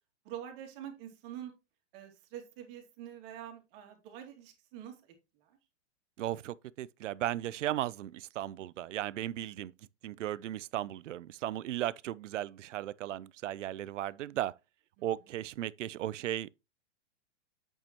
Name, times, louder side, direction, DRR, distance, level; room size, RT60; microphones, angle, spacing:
voice 1, 0.2-1.5 1.9-5.0 5.4-5.6 10.2-10.3 15.0-15.1, right 10 dB, 50° right, 2.7 m, -46 dB
voice 2, 6.2-9.7 10.0-14.5 15.0-16.5, right 13 dB, 80° right, 0.6 m, -36 dB
7.9 x 7.2 x 3.0 m
hypercardioid pair, 130°, 36 cm